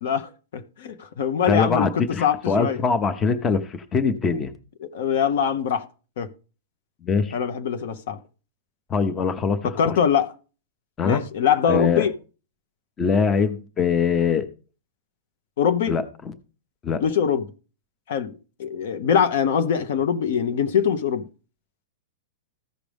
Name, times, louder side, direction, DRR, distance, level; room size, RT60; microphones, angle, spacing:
voice 1, 0.0-1.9 2.2-2.8 4.9-5.9 6.2-6.3 7.3-8.2 9.6-10.3 11.0-12.1 15.6-15.9 17.0-17.5 18.1-18.3 18.6-21.2, left 7 dB, 65° left, 1.1 m, -23 dB
voice 2, 1.5-4.5 7.0-7.4 8.9-9.9 11.0-11.2 11.7-12.1 13.0-14.5 15.9-16.0 16.8-17.0, left 5 dB, 20° left, 0.9 m, -22 dB
14.5 x 5.1 x 3.5 m
hypercardioid pair, 140°, 0 cm